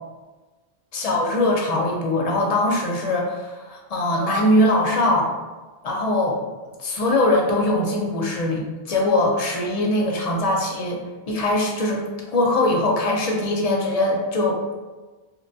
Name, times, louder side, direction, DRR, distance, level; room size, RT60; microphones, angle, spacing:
voice 1, 0.9-5.3 5.8-6.4 6.8-11.0 11.3-14.7, left 1 dB, 55° left, -1 dB, 0.4 m, -21 dB
2.6 x 2.1 x 2.6 m, 1.3 s
omnidirectional pair, 1.0 m